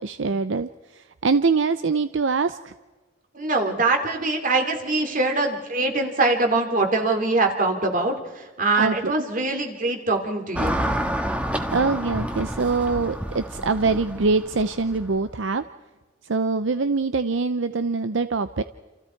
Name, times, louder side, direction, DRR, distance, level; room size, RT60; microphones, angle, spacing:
voice 1, 0.0-2.7 8.8-9.1 11.7-15.6 16.2-18.6, right 4 dB, 75° right, 11 dB, 0.7 m, -24 dB
voice 2, 3.3-10.8, right 3 dB, 45° right, 4 dB, 3.1 m, -23 dB
Car passing by / Traffic noise roadway noise, 10.6-15.2, equal, 5° right, 1.5 m, -29 dB
28.5 x 28.0 x 4.6 m, 1.3 s
head